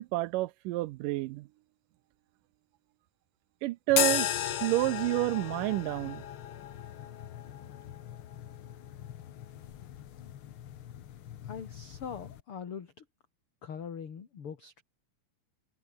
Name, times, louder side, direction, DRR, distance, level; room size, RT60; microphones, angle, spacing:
voice 1, 0.0-1.5 3.6-6.2, right 18 dB, 80° right, 2.2 m, -29 dB
sound 1, 3.9-12.4, left 11 dB, 70° left, 1.2 m, -36 dB
voice 2, 11.4-13.0 13.6-14.8, left 7 dB, 45° left, 2.8 m, -42 dB
omnidirectional pair, 4.0 m